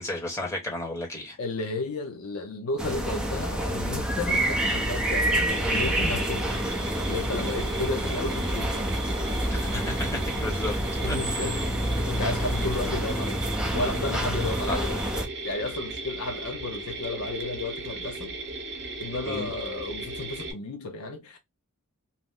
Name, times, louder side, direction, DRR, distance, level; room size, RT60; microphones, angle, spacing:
voice 1, 0.0-1.4 9.5-10.8 11.1-11.6 14.7-14.9 19.2-19.5, left 1 dB, 15° left, 1.0 m, -33 dB
voice 2, 1.4-6.5 7.1-8.7 11.0-11.6 12.1-13.4 13.7-18.3 19.0-21.4, left 2 dB, 70° left, 0.6 m, -33 dB
sound 1, 2.8-15.3, right 1 dB, 5° right, 0.6 m, -28 dB
Mechanisms, 5.5-20.5, right 2 dB, 50° right, 0.9 m, -36 dB
2.8 x 2.1 x 3.4 m
head